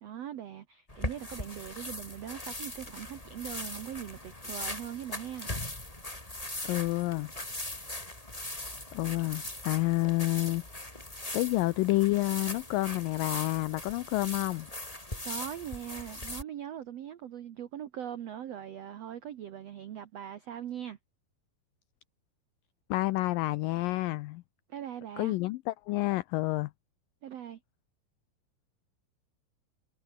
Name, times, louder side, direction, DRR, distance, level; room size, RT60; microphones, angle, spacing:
voice 1, 0.0-5.5 15.2-21.0 24.7-25.3 27.2-27.6, right 10 dB, 80° right, 1.4 m, -41 dB
sound 1, 0.9-16.4, left 1 dB, 10° left, 3.1 m, -40 dB
voice 2, 6.6-7.3 8.9-10.6 11.3-14.7 22.9-24.4 25.2-26.7, left 19 dB, 85° left, 1.9 m, -29 dB
omnidirectional pair, 4.7 m